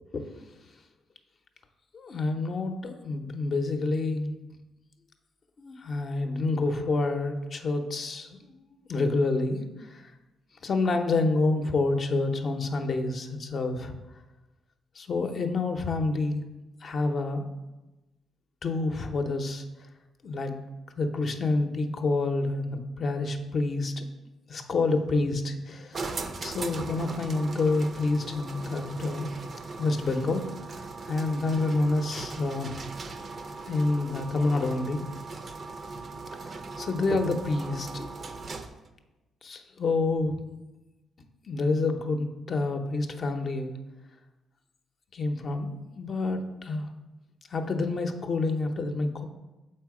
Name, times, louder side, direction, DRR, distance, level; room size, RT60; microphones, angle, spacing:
voice 1, 1.9-4.3 5.6-8.6 8.9-10.0 10.6-14.0 15.0-16.4 16.8-17.5 18.6-19.6 20.2-20.6 21.0-24.1 24.5-26.1 26.4-29.3 29.8-30.5 30.8-32.7 33.7-35.0 36.4-38.1 39.4-40.4 41.5-43.7 45.1-46.9 47.5-49.3, left 3 dB, 50° left, 5 dB, 0.7 m, -28 dB
sound 1, 25.9-38.9, right 3 dB, 45° right, 0.5 m, -39 dB
6.6 x 4.5 x 4.8 m, 1.1 s
cardioid pair, 90°, 0 cm